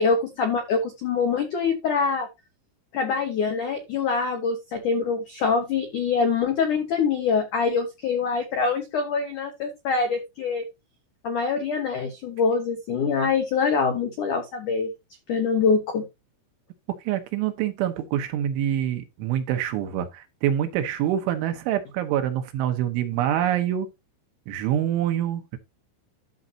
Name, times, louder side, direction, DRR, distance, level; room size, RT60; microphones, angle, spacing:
voice 1, 0.0-2.3 2.9-10.6 11.2-14.9 15.3-16.0, left 5 dB, 85° left, 1.7 m, -24 dB
voice 2, 17.0-23.9 24.5-25.6, right 11 dB, 80° right, 3.3 m, -26 dB
13.5 x 5.5 x 2.8 m
omnidirectional pair, 5.8 m